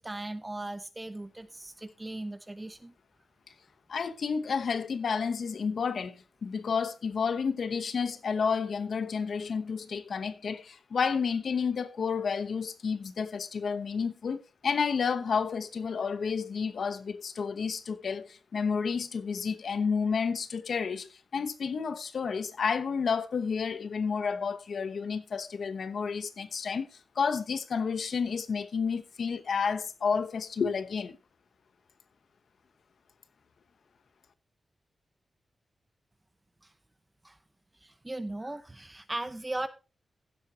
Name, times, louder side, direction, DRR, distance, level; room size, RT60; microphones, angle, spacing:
voice 1, 0.0-2.9 37.2-37.4 37.8-39.7, right 2 dB, 15° right, 0.7 m, -38 dB
voice 2, 3.9-26.9 27.1-31.2, left 5 dB, 65° left, 0.9 m, -31 dB
15.5 x 7.8 x 2.9 m
wide cardioid pair, 135°, 0 cm